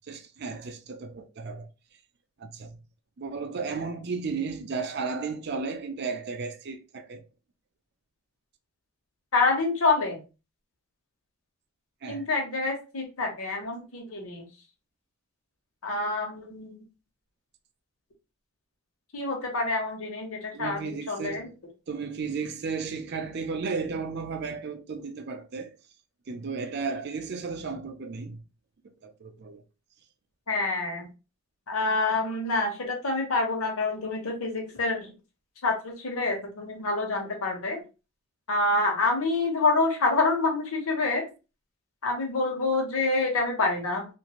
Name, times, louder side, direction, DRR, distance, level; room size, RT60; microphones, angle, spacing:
voice 1, 0.1-1.7 2.4-2.8 3.2-7.2 12.0-12.2 20.5-21.6 21.9-25.7 26.3-28.4 28.8-29.6, right 4 dB, 50° right, 0.4 m, -34 dB
voice 2, 9.3-10.2 12.1-14.5 15.8-16.8 19.1-21.5 30.5-31.1 31.7-35.1 35.6-37.8 38.5-41.3 42.0-44.1, left 3 dB, 85° left, 1.0 m, -27 dB
3.0 x 2.5 x 2.3 m
head